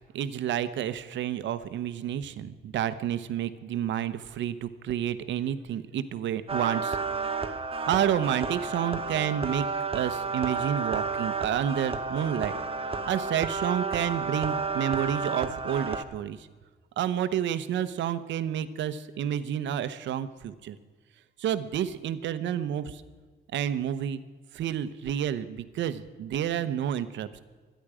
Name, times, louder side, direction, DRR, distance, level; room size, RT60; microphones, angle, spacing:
voice 1, 0.1-7.5 7.9-9.7 9.9-12.5 13.1-16.5 17.0-20.8 21.4-23.0 23.5-24.2 24.5-27.4, right 10 dB, 90° right, 12 dB, 1.0 m, -30 dB
sound 1, 6.5-16.0, right 4 dB, 30° right, 1.0 m, -31 dB
25.5 x 10.5 x 5.0 m, 1.5 s
cardioid pair, 140°, 18 cm